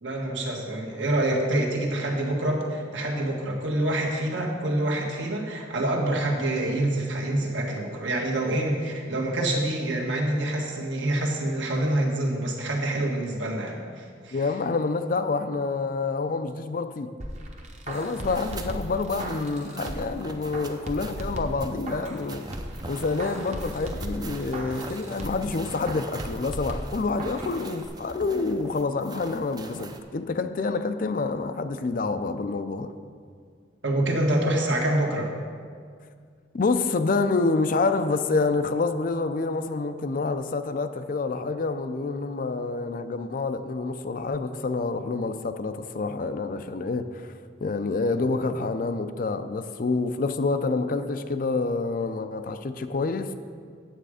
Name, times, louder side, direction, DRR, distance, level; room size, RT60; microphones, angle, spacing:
voice 1, 0.0-14.4 33.8-35.3, right 1 dB, 75° right, -1 dB, 1.5 m, -26 dB
voice 2, 14.3-17.1 17.9-22.4 22.9-32.9 36.5-47.3 47.6-53.3, left 3 dB, 45° left, 10 dB, 0.4 m, -27 dB
sound 1, 17.2-20.2 20.5-22.2 22.5-25.5 25.9-27.5 27.8-27.9, right 1 dB, 35° right, 0.9 m, -36 dB
sound 2, 18.3-30.0, right 2 dB, 20° right, 0.5 m, -42 dB
9.2 x 7.6 x 4.9 m, 2.1 s
head